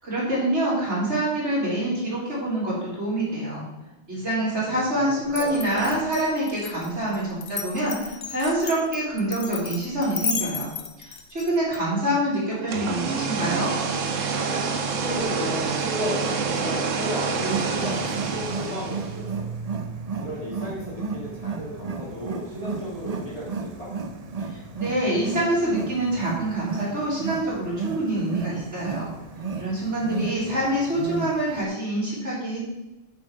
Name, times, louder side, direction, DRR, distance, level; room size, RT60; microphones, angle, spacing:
voice 1, 0.0-3.7 4.1-10.7 11.0-13.7 24.5-29.1 29.6-32.6, right 1 dB, 65° right, -7 dB, 4.1 m, -26 dB
voice 2, 4.9-6.0 15.0-19.5 20.2-23.9 30.4-30.8, equal, 30° left, -5 dB, 2.2 m, -34 dB
Glass, 5.3-11.8, left 6 dB, 60° left, 1.1 m, -33 dB
sound 1, 12.5-19.3, right 5 dB, 85° right, 1.3 m, -27 dB
Wild animals, 17.3-31.6, right 4 dB, 40° right, 0.6 m, -33 dB
8.3 x 6.8 x 5.2 m, 0.95 s
omnidirectional pair, 1.3 m